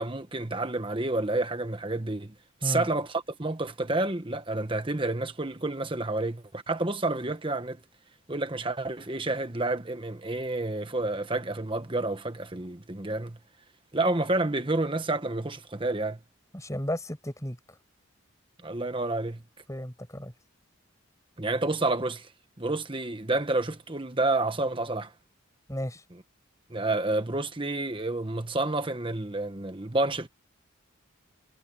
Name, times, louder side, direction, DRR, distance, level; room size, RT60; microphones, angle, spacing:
voice 1, 0.0-2.3 2.6-7.8 8.3-13.4 13.9-16.2 18.6-19.4 21.4-22.3 22.6-25.1 26.7-30.3, right 2 dB, 25° right, 1.2 m, -29 dB
voice 2, 16.5-17.6 19.7-20.3 25.7-26.0, equal, 15° left, 7.5 m, -33 dB
head